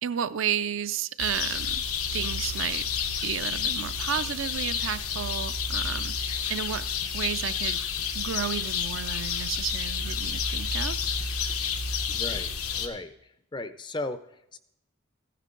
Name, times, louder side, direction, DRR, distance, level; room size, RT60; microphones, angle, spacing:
voice 1, 0.0-1.8 2.1-2.8 3.2-7.8 8.1-11.0, right 9 dB, 60° right, 13 dB, 0.4 m, -32 dB
sound 1, 1.2-12.9, left 6 dB, 90° left, 1.1 m, -30 dB
voice 2, 12.1-12.5 12.8-14.6, left 2 dB, 20° left, 11 dB, 0.4 m, -36 dB
15.0 x 10.0 x 3.8 m, 0.83 s
head